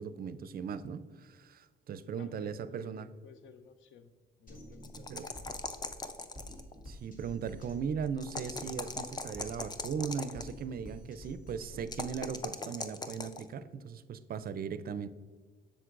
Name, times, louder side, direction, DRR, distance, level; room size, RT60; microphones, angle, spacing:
voice 1, 0.0-3.1 5.1-5.3 6.9-15.1, right 7 dB, 50° right, 14 dB, 0.4 m, -38 dB
voice 2, 2.2-4.1 4.4-6.0, left 6 dB, 75° left, 11 dB, 0.6 m, -55 dB
Drum kit, 4.5-12.5, equal, 45° left, 1.9 m, -50 dB
sound 1, 4.8-6.7 8.2-10.5 11.9-13.4, left 3 dB, 20° left, 0.5 m, -39 dB
7.7 x 6.5 x 2.5 m, 1.5 s
cardioid pair, 90°, 20 cm